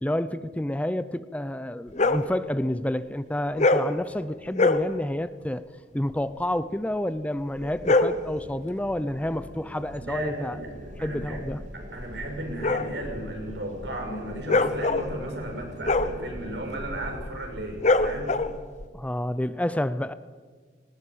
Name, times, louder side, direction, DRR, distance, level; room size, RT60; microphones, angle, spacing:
voice 1, 0.0-5.6 5.9-10.6 11.0-11.6 18.9-20.1, left 1 dB, 10° left, 14 dB, 0.6 m, -29 dB
sound 1, 1.9-2.3 3.5-4.0 4.5-4.9 7.6-8.3 10.8-18.8, left 2 dB, 45° left, 1.1 m, -25 dB
sound 2, 7.5-17.2, right 1 dB, 50° right, 2.0 m, -45 dB
voice 2, 10.0-11.4 11.7-18.3, right 1 dB, 85° right, 1 dB, 6.6 m, -35 dB
19.5 x 18.5 x 9.1 m, 1.5 s
head